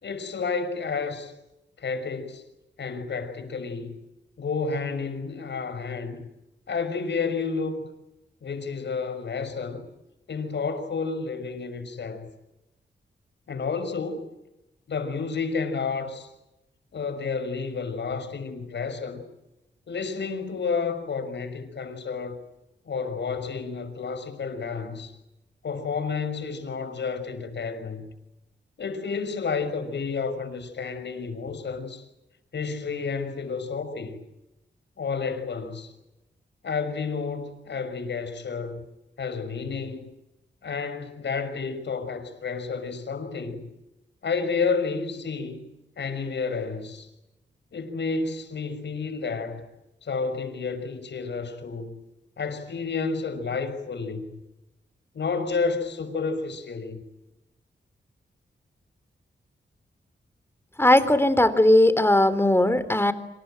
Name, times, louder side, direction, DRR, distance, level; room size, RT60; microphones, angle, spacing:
voice 1, 0.0-1.3 1.8-2.4 2.8-4.0 4.4-6.3 6.7-7.9 8.4-9.8 10.3-12.3 13.5-14.3 14.9-16.3 16.9-19.2 19.9-22.4 22.9-25.1 25.6-28.1 28.8-32.0 32.5-34.2 35.0-35.9 36.6-38.8 39.2-40.1 40.6-43.7 44.2-45.7 46.0-47.1 47.7-49.7 50.0-52.0 52.4-54.4 55.1-57.0, left 5 dB, 70° left, 5.9 m, -30 dB
voice 2, 60.8-63.1, left 1 dB, 10° left, 3.5 m, -18 dB
27.0 x 27.0 x 7.9 m
cardioid pair, 75°, 19 cm